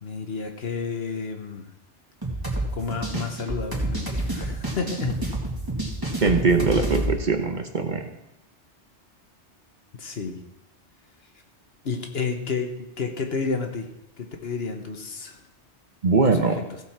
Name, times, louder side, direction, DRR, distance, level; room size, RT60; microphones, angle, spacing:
voice 1, 0.0-1.7 2.7-5.2 10.0-10.4 11.8-13.9 14.2-15.4 16.3-16.8, left 5 dB, 60° left, 4 dB, 1.4 m, -31 dB
sound 1, 2.2-7.1, right 1 dB, 20° right, 2.1 m, -28 dB
voice 2, 6.2-8.1 16.0-16.6, right 4 dB, 45° right, 5 dB, 1.0 m, -21 dB
15.5 x 6.8 x 4.4 m, 0.88 s
omnidirectional pair, 1.2 m